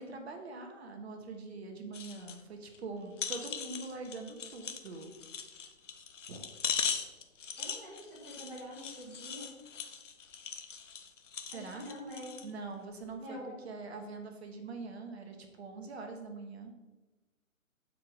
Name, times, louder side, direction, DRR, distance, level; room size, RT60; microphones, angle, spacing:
voice 1, 0.0-5.1 6.3-6.5 11.5-11.9 12.4-16.7, right 3 dB, 50° right, 4 dB, 1.0 m, -44 dB
sound 1, 1.9-2.4 2.7-2.8 3.2-12.5 13.0-13.1, left 6 dB, 65° left, 0.8 m, -40 dB
voice 2, 7.6-9.5 11.5-12.4 13.2-13.5, equal, 5° right, -8 dB, 0.8 m, -46 dB
7.4 x 4.6 x 4.0 m, 1.2 s
figure-of-eight pair, 145°, 41 cm